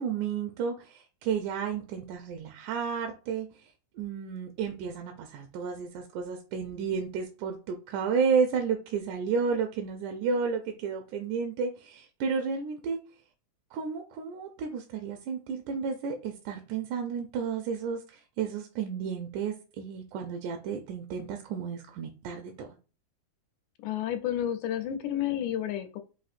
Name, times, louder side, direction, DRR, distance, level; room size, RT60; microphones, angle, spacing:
voice 1, 0.0-3.7 4.0-13.0 13.7-22.7, right 6 dB, 85° right, 2.0 m, -32 dB
voice 2, 23.8-26.0, left 11 dB, 85° left, 2.0 m, -31 dB
5.5 x 2.7 x 2.4 m
omnidirectional pair, 3.4 m